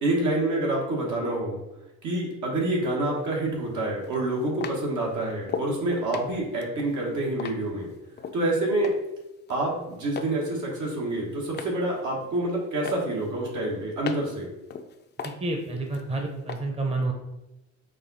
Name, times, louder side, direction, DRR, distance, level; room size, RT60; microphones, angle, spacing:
voice 1, 0.0-1.6 2.0-7.9 8.3-8.9 9.5-14.5, right 1 dB, 80° right, -2 dB, 1.4 m, -27 dB
sound 1, 3.0-3.1 4.0-5.8 6.1-8.4 8.8-9.2 9.5-10.4 10.7-11.8 12.2-12.6 12.9-14.4 14.7-16.1 16.5-16.6, left 5 dB, 35° left, 0.4 m, -37 dB
voice 2, 15.2-17.1, right 2 dB, 20° right, 2 dB, 0.7 m, -29 dB
5.2 x 2.3 x 4.0 m, 0.95 s
cardioid pair, 90°, 30 cm